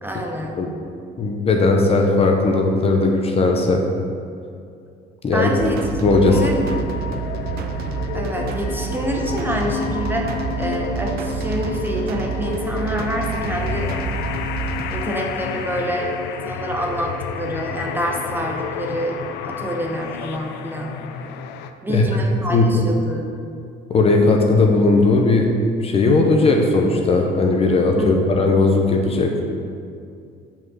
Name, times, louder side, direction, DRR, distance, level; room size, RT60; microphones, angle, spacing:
voice 1, 0.0-0.6 5.3-5.8 6.2-6.6 8.1-13.9 14.9-19.2 19.4-21.0 21.8-23.4 28.0-28.2, equal, 10° right, 0 dB, 0.9 m, -27 dB
voice 2, 1.2-3.8 5.2-5.5 6.0-6.4 21.9-22.0 22.5-22.8 23.9-25.5 25.8-29.3, left 3 dB, 35° left, 2 dB, 0.9 m, -17 dB
sound 1, 5.6-15.0, right 8 dB, 70° right, 0.6 m, -29 dB
sound 2, 6.1-21.7, left 7 dB, 85° left, 0.4 m, -30 dB
5.4 x 5.0 x 6.3 m, 2.4 s
cardioid pair, 110°, 17 cm